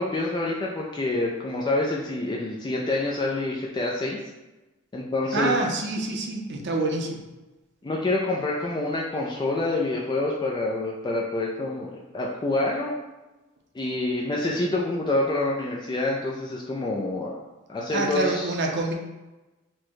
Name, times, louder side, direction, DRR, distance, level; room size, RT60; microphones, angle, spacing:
voice 1, 0.0-4.2 4.9-5.5 7.8-12.9 13.7-17.4 17.7-18.5, left 2 dB, 20° left, -2 dB, 0.4 m, -27 dB
voice 2, 5.3-7.3 17.9-18.9, right 2 dB, 55° right, 1 dB, 0.6 m, -26 dB
4.3 x 2.2 x 4.5 m, 1.1 s
head